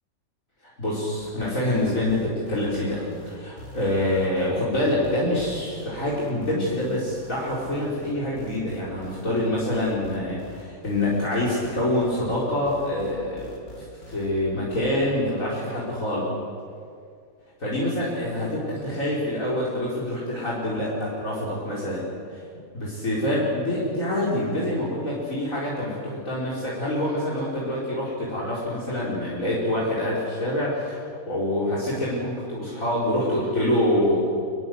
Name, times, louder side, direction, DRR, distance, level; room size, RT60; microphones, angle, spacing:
voice 1, 0.6-16.3 17.6-22.0 22.3-31.0 31.3-34.2, left 1 dB, 65° left, -7 dB, 4.9 m, -26 dB
sound 1, 1.2-14.3 14.7-14.9, left 3 dB, 85° left, 4.0 m, -44 dB
25.5 x 21.0 x 7.8 m, 2.2 s
omnidirectional pair, 1.5 m